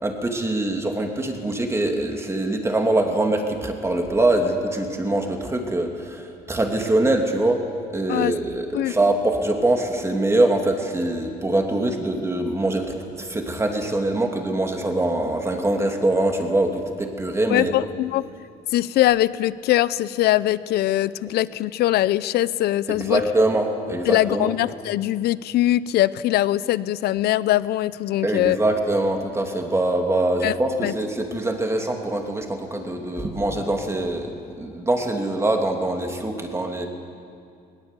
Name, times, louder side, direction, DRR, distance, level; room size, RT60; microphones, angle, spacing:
voice 1, 0.0-7.7 7.9-17.7 22.9-24.5 28.2-36.9, right 2 dB, 15° right, 3 dB, 2.7 m, -23 dB
voice 2, 17.5-18.3 18.7-23.2 24.1-28.6 30.4-30.5 30.8-30.9, left 14 dB, 70° left, 17 dB, 0.7 m, -22 dB
20.0 x 19.0 x 8.3 m, 2.4 s
cardioid pair, 110°, 17 cm